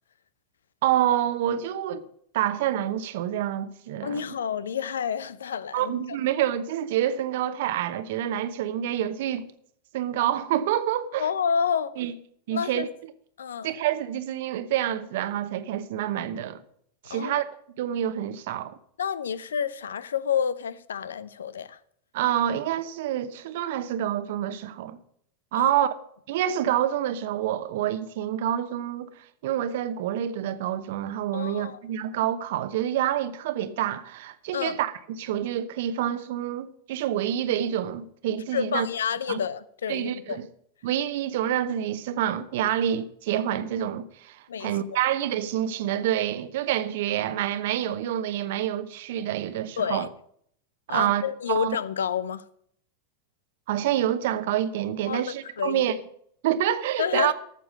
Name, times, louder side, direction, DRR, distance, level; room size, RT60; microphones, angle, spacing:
voice 1, 0.8-2.0 2.3-4.2 5.7-9.5 9.9-11.3 12.0-12.1 12.5-12.9 13.6-16.6 17.0-17.4 17.8-18.8 22.1-25.0 25.5-25.9 26.3-29.1 29.4-34.9 35.2-38.9 39.3-39.4 39.9-40.5 40.8-50.1 50.9-51.8 53.7-55.9 56.4-57.3, right 11 dB, 60° right, 0.9 m, -27 dB
voice 2, 4.0-6.2 11.2-11.9 12.5-12.9 13.4-13.7 17.1-17.3 19.0-21.8 25.5-25.8 31.3-31.8 34.5-34.8 38.5-40.4 44.5-45.0 49.8-50.1 50.9-52.4 55.1-55.8 57.0-57.3, left 7 dB, 75° left, 0.6 m, -29 dB
13.5 x 7.0 x 6.4 m
figure-of-eight pair, 90°, 0 cm